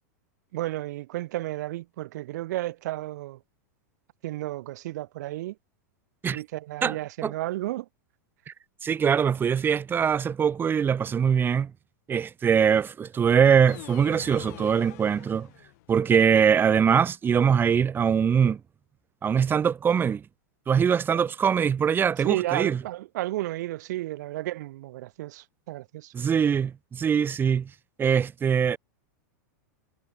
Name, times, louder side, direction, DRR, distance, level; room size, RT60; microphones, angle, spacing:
voice 1, 0.5-3.4 4.2-5.6 6.3-7.9 21.1-21.2 22.2-26.1, right 16 dB, 65° right, 2.0 m, -32 dB
voice 2, 8.8-11.7 12.1-15.5 15.9-18.6 19.2-20.2 20.7-22.8 26.1-27.7 28.0-28.8, right 7 dB, 20° right, 2.3 m, -22 dB
sound 1, 13.7-16.0, left 21 dB, 60° left, 3.8 m, -44 dB
hypercardioid pair, 125°, 10 cm